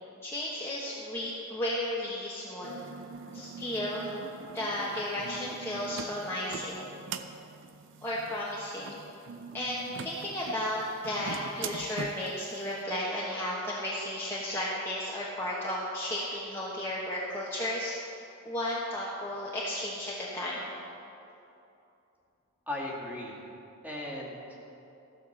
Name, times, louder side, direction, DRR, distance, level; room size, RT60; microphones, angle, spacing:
voice 1, 0.2-2.7 3.3-4.1 4.5-6.9 8.0-9.0 9.5-17.9 18.4-20.7, left 1 dB, 10° left, -7 dB, 1.2 m, -34 dB
sound 1, 2.6-12.4, right 5 dB, 60° right, 0.5 m, -43 dB
voice 2, 22.7-23.4 23.8-24.6, left 1 dB, 5° right, -5 dB, 2.0 m, -37 dB
14.5 x 6.0 x 7.2 m, 2.9 s
head